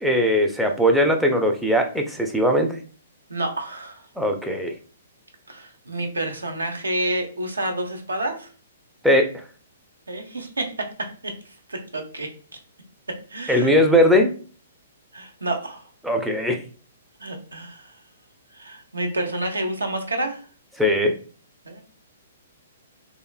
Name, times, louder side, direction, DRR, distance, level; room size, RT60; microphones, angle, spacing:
voice 1, 0.0-2.8 4.2-4.7 9.0-9.4 13.5-14.3 16.0-16.6 20.8-21.1, equal, ahead, 3 dB, 0.4 m, -19 dB
voice 2, 3.3-4.1 5.5-8.5 10.1-11.3 11.7-12.3 13.1-13.7 15.1-15.8 17.2-17.9 18.5-20.4 21.6-21.8, right 1 dB, 75° right, 4 dB, 0.6 m, -29 dB
3.0 x 2.4 x 2.3 m, 0.41 s
figure-of-eight pair, 120°, 0 cm